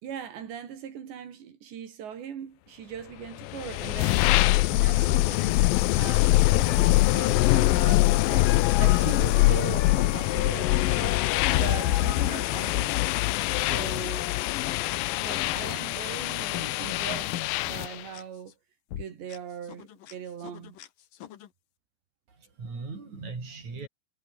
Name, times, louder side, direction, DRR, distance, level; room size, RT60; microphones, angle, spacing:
voice 1, 0.0-4.3 4.7-5.6 6.0-13.0 13.6-14.3 15.2-17.4 17.7-18.6 18.9-20.8, right 8 dB, 85° right, 5.5 m, -40 dB
sound 1, 3.4-18.0, left 19 dB, 85° left, 2.1 m, -24 dB
sound 2, 6.7-17.6 18.1-18.2 18.9-19.0 19.3-19.4 19.7-20.1 20.4-20.9 21.2-21.5, left 11 dB, 60° left, 2.9 m, -34 dB
voice 2, 22.3-23.9, right 4 dB, 45° right, 7.8 m, -39 dB
omnidirectional pair, 4.9 m